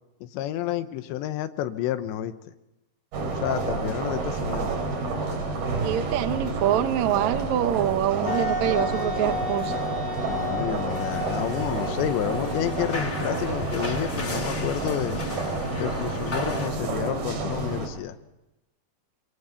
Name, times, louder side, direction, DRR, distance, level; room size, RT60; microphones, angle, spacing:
voice 1, 0.2-2.3 3.4-4.7 8.2-8.4 10.2-15.2 15.8-18.2, left 12 dB, 85° left, 10 dB, 3.1 m, -30 dB
sound 1, 3.1-17.9, right 3 dB, 60° right, 5.8 m, -29 dB
voice 2, 5.8-9.7, right 12 dB, 85° right, 10 dB, 1.6 m, -25 dB
Wind instrument woodwind instrument, 8.3-13.8, left 3 dB, 10° right, 5.1 m, -33 dB
sound 2, 10.9-16.7, left 3 dB, 35° left, 1.2 m, -36 dB
25.5 x 24.5 x 5.7 m, 0.98 s
omnidirectional pair, 5.0 m